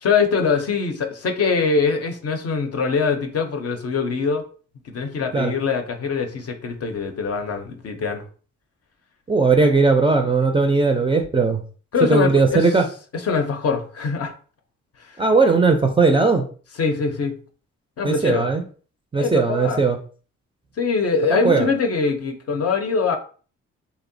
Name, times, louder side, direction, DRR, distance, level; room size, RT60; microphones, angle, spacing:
voice 1, 0.0-4.4 4.9-8.2 11.9-12.8 13.1-14.3 15.0-15.2 16.8-17.4 18.0-18.5 19.2-19.8 20.8-23.2, left 5 dB, 50° left, 0.6 m, -23 dB
voice 2, 9.3-11.6 12.1-12.9 15.2-16.5 18.0-18.6 19.1-20.0 21.3-21.7, right 4 dB, 15° right, 0.4 m, -18 dB
2.7 x 2.0 x 2.6 m
supercardioid pair, 60°, 32 cm